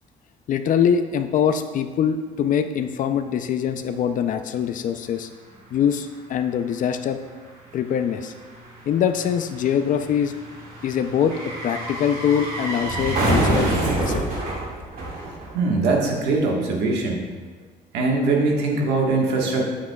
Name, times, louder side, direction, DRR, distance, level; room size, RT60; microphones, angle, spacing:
voice 1, 0.5-5.3 5.7-7.2 7.7-8.3 8.9-10.3 10.8-13.7 14.0-14.2, left 8 dB, 50° left, 8 dB, 0.4 m, -23 dB
sound 1, 5.2-5.3 5.5-15.9 16.2-16.3, right 1 dB, 60° right, 1.9 m, -28 dB
voice 2, 15.5-17.2 17.9-19.7, right 3 dB, 85° right, -1 dB, 1.4 m, -21 dB
8.3 x 7.3 x 2.3 m, 1.5 s
cardioid pair, 110°, 17 cm